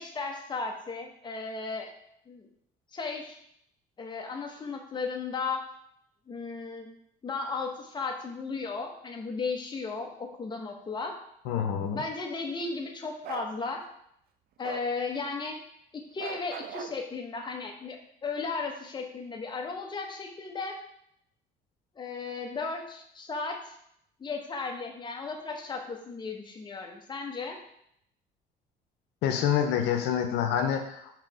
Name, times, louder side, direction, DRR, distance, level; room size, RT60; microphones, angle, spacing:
voice 1, 0.0-1.9 2.3-2.5 2.9-3.4 4.0-5.6 6.3-6.9 7.2-11.1 11.9-13.8 14.6-15.5 16.1-20.8 22.0-23.7 24.2-27.6, left 4 dB, 25° left, 2 dB, 1.1 m, -35 dB
voice 2, 11.5-12.0 29.2-31.1, left 8 dB, 90° left, 5 dB, 0.7 m, -27 dB
Bark, 13.2-13.5 14.6-14.9 16.2-17.0, right 9 dB, 65° right, 0.5 m, -39 dB
4.8 x 4.0 x 4.9 m, 0.73 s
cardioid pair, 110°, 17 cm